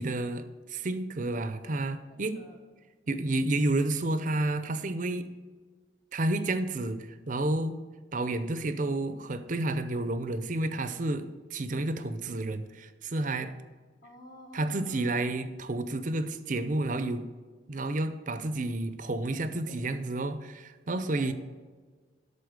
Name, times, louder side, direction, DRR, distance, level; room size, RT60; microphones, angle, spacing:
voice 1, 0.0-2.4 3.1-5.3 6.1-7.8 8.1-13.5 14.5-17.3 17.7-21.3, right 2 dB, 45° right, 11 dB, 0.6 m, -30 dB
voice 2, 2.1-2.6 3.0-3.3 14.0-15.3 19.7-20.0 21.0-21.3, equal, 50° left, 1 dB, 1.4 m, -50 dB
12.0 x 4.2 x 8.0 m, 1.4 s
head